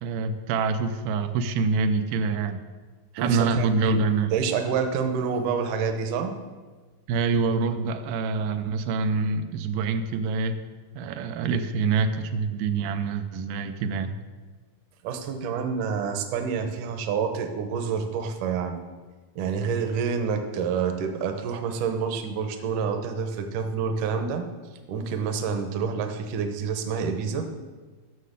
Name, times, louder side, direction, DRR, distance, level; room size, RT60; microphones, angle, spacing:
voice 1, 0.0-2.6 3.1-4.3 7.1-10.6 11.0-14.1, right 4 dB, 90° right, 7 dB, 2.5 m, -26 dB
voice 2, 3.2-4.0 4.3-6.4 15.0-18.8 19.4-24.5 24.9-27.5, right 6 dB, 70° right, 6 dB, 2.2 m, -28 dB
9.6 x 6.4 x 6.6 m, 1.3 s
omnidirectional pair, 4.2 m